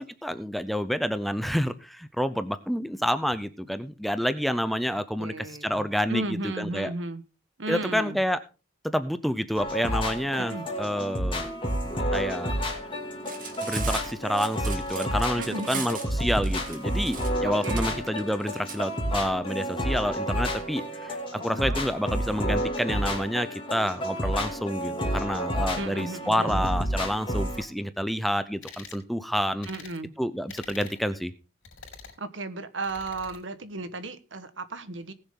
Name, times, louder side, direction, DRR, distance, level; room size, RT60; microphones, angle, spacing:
voice 1, 0.0-6.9 7.7-8.4 8.8-11.5 12.1-12.5 13.6-29.7 30.2-31.3, equal, ahead, 12 dB, 0.5 m, -29 dB
voice 2, 5.2-7.2 7.6-8.2 10.4-10.7 15.4-15.8 17.4-18.0 21.5-21.8 25.7-26.6 29.7-30.1 32.2-35.1, right 2 dB, 70° right, 11 dB, 1.3 m, -35 dB
sound 1, 9.5-27.6, equal, 25° left, 2.7 m, -30 dB
Cutlery silverware, 13.1-18.8, right 6 dB, 45° right, 2.3 m, -38 dB
sound 2, 28.6-29.0 29.6-30.0 30.5-31.0 31.6-32.2 32.8-33.4, left 5 dB, 75° left, 4.3 m, -45 dB
19.5 x 7.1 x 3.7 m, 0.33 s
head